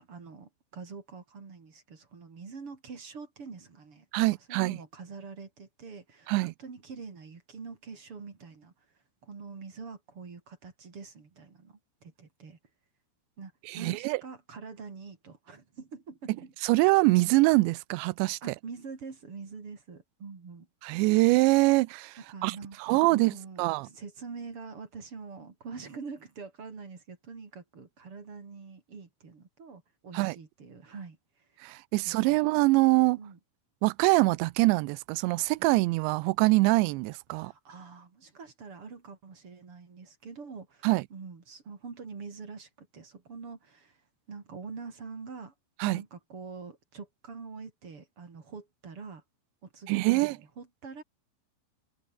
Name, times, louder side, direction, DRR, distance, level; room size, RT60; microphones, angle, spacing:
voice 1, 0.0-6.3 6.6-8.7 9.2-12.6 13.4-16.5 18.4-20.7 22.2-31.5 32.0-32.4 33.2-33.4 37.4-44.0 44.3-45.5 45.8-49.2 49.6-51.0, right 5 dB, 35° right, 3.7 m, -45 dB
voice 2, 4.1-4.8 6.3-6.5 13.7-14.2 16.6-18.4 20.8-23.9 30.1-30.4 31.6-33.2 33.8-37.5 40.8-41.0 45.8-46.0 49.9-50.4, right 22 dB, 85° right, 2.9 m, -24 dB
omnidirectional pair, 5.1 m